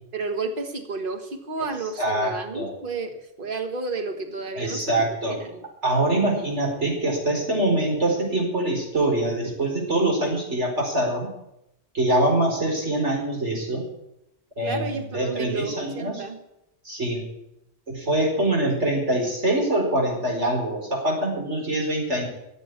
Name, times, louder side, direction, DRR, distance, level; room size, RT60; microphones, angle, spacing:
voice 1, 0.1-5.6 14.6-16.4, right 3 dB, 50° right, 6 dB, 1.7 m, -32 dB
voice 2, 2.0-2.7 4.5-5.4 5.8-11.3 11.9-13.8 14.6-16.2 16.8-17.2 17.9-22.3, right 1 dB, 85° right, -1 dB, 5.1 m, -24 dB
14.0 x 8.2 x 9.8 m, 0.84 s
omnidirectional pair, 1.2 m